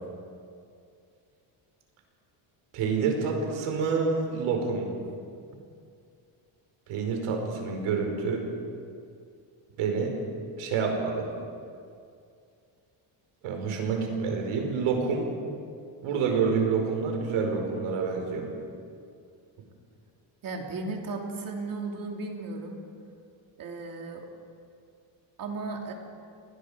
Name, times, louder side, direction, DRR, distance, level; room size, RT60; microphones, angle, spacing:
voice 1, 2.7-5.0 6.9-8.4 9.8-10.1 10.6-11.3 13.4-15.3 16.0-18.5, right 5 dB, 80° right, 2 dB, 5.0 m, -28 dB
voice 2, 20.4-22.8 23.6-24.3 25.4-25.9, right 3 dB, 40° right, 1 dB, 3.2 m, -35 dB
30.0 x 21.0 x 5.1 m, 2.4 s
cardioid pair, 170°, 49 cm